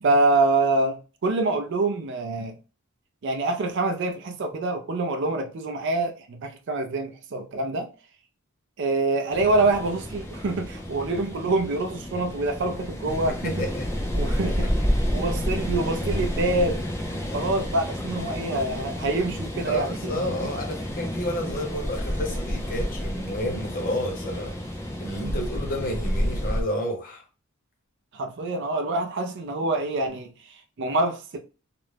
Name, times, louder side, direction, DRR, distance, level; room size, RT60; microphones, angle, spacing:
voice 1, 0.0-2.6 3.2-7.9 8.8-13.7 14.1-14.7 15.1-16.8 17.3-20.5 25.2-25.4 28.1-31.4, right 2 dB, 60° right, 0.4 m, -26 dB
sound 1, 9.3-26.6, equal, 15° left, 0.4 m, -30 dB
voice 2, 13.2-13.9 19.7-24.7 25.0-27.2, left 1 dB, 40° left, 0.8 m, -31 dB
2.5 x 2.1 x 3.2 m
head